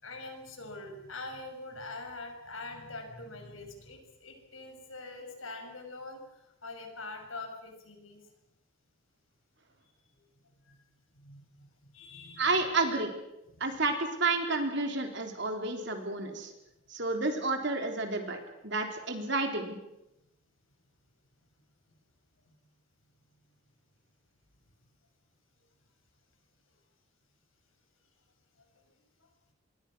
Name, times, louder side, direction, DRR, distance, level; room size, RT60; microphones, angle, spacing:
voice 1, 0.0-8.3 10.2-10.3 10.6-10.8 11.2-12.7 13.5-13.9 21.9-22.0 22.4-22.7 28.6-28.8 29.2-29.3, left 2 dB, 70° left, 4 dB, 6.1 m, -44 dB
voice 2, 12.4-13.1 13.6-16.5 16.9-19.8, right 3 dB, 55° right, 5 dB, 3.9 m, -30 dB
27.5 x 22.5 x 6.4 m, 0.91 s
head